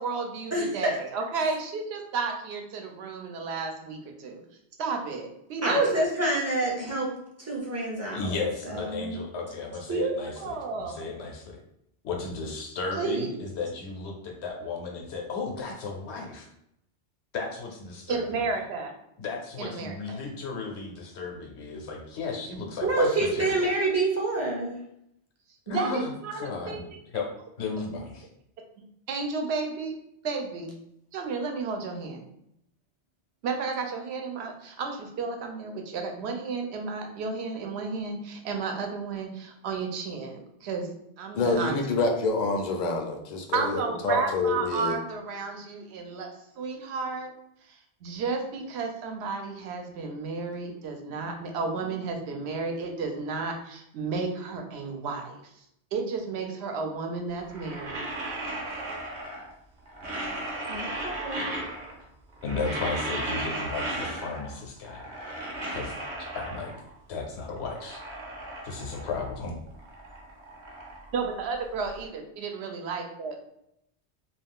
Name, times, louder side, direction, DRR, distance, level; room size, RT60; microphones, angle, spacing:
voice 1, 0.0-4.4 4.8-6.0 9.4-9.5 9.9-11.0 13.0-13.4 18.1-18.9 19.6-20.2 25.7-26.8 29.1-30.0 30.2-30.7 31.1-32.2 33.4-40.9 41.2-41.8 43.5-46.3 46.6-47.3 47.7-55.4 55.9-58.0 71.1-73.4, right 4 dB, 75° right, 3 dB, 0.8 m, -32 dB
voice 2, 0.5-0.9 5.6-7.1 7.4-8.4 8.7-9.2 22.8-24.8 60.7-61.5, right 2 dB, 20° right, -3 dB, 0.5 m, -27 dB
voice 3, 8.1-11.6 12.0-16.5 17.3-18.2 19.2-23.7 25.7-26.0 26.3-26.8 27.1-27.3 27.6-28.3 62.4-65.0 65.7-65.9 66.3-66.7 67.1-68.0 68.6-69.5, left 4 dB, 80° left, 1 dB, 1.0 m, -34 dB
voice 4, 41.3-45.0, left 3 dB, 55° left, 3 dB, 0.5 m, -27 dB
sound 1, 57.4-59.6 59.9-62.0 62.3-64.6 64.8-66.9 67.4-69.4 69.7-71.9, right 1 dB, 50° right, 0.8 m, -36 dB
2.4 x 2.3 x 3.5 m, 0.78 s
omnidirectional pair, 1.1 m